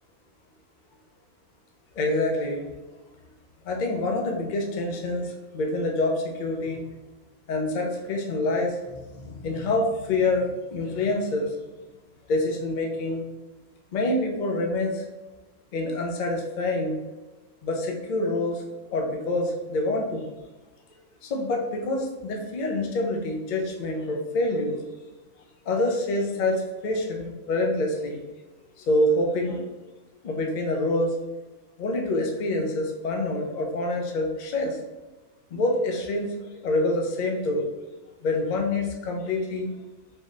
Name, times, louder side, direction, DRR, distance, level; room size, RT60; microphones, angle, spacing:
voice 1, 1.9-2.7 3.6-6.8 7.5-11.6 12.3-13.2 13.9-15.0 15.7-17.0 17.6-18.6 18.9-20.3 21.2-24.8 25.7-28.2 28.8-29.6 30.2-31.1 31.8-34.8 35.5-37.9 38.2-39.7, left 2 dB, 85° left, 1 dB, 0.4 m, -26 dB
3.9 x 2.0 x 3.7 m, 1.1 s
omnidirectional pair, 1.6 m